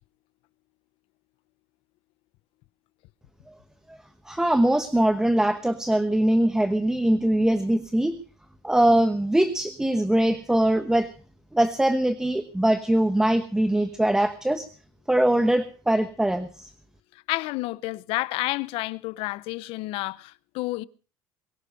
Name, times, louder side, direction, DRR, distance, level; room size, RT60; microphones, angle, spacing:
voice 1, 4.3-8.1 8.6-11.1 11.5-14.7 15.1-16.7, right 1 dB, 5° right, 1.0 m, -22 dB
voice 2, 17.3-20.8, left 20 dB, 75° left, 0.7 m, -30 dB
22.5 x 11.5 x 5.2 m
cardioid pair, 135°, 10 cm